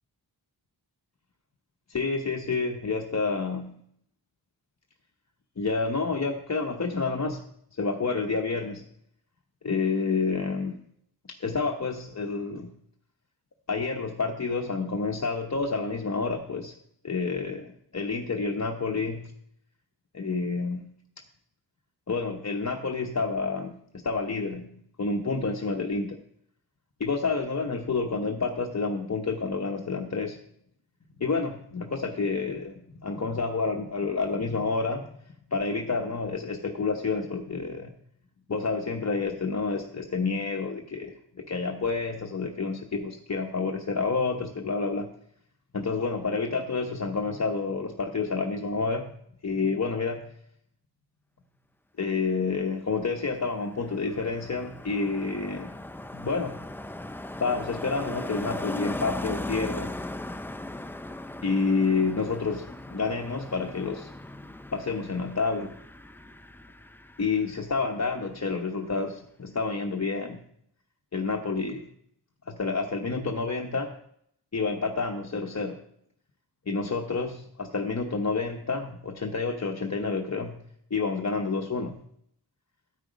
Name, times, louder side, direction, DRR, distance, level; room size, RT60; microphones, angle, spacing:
voice 1, 1.9-3.8 5.6-7.4 7.8-8.8 9.6-10.7 11.3-12.7 13.7-16.7 17.0-19.3 20.1-20.8 22.1-23.7 24.0-24.7 25.0-26.2 27.0-30.4 31.2-35.1 35.5-37.9 38.5-45.1 45.7-49.1 49.4-50.3 52.0-55.7 56.1-56.6 57.4-59.9 61.4-64.1 64.7-65.7 67.2-70.4 71.1-71.8 72.5-74.0 74.5-75.8 76.7-80.6 80.9-82.0, left 4 dB, 40° left, 3 dB, 0.9 m, -29 dB
Car passing by, 53.1-67.9 68.1-68.4, left 1 dB, 5° left, 0.5 m, -38 dB
9.1 x 8.3 x 5.1 m, 0.70 s
cardioid pair, 50°, 44 cm